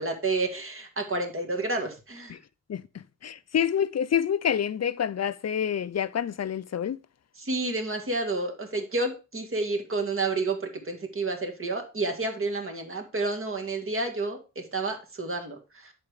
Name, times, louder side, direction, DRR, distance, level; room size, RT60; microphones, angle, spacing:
voice 1, 0.0-2.3 7.4-15.9, right 3 dB, 40° right, 2.0 m, -30 dB
voice 2, 2.7-7.0, left 9 dB, 55° left, 0.6 m, -28 dB
10.5 x 5.1 x 5.0 m
wide cardioid pair, 165°, 32 cm